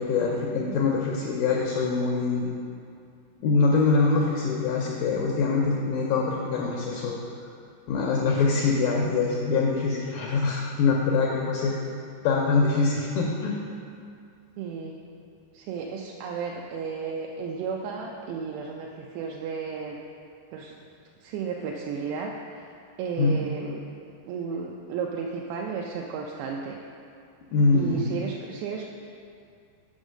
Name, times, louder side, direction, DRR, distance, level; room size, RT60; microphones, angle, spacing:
voice 1, 0.0-2.5 3.4-7.2 7.9-11.7 12.2-13.6 23.2-23.4 27.5-28.1, left 4 dB, 85° left, -2 dB, 2.0 m, -24 dB
voice 2, 0.5-0.9 14.6-15.0 15.5-20.0 20.5-20.7 21.2-22.7 23.0-23.8 24.3-26.8 27.7-28.9, right 5 dB, 85° right, -1 dB, 2.6 m, -33 dB
6.2 x 5.0 x 6.3 m, 2.5 s
omnidirectional pair, 4.7 m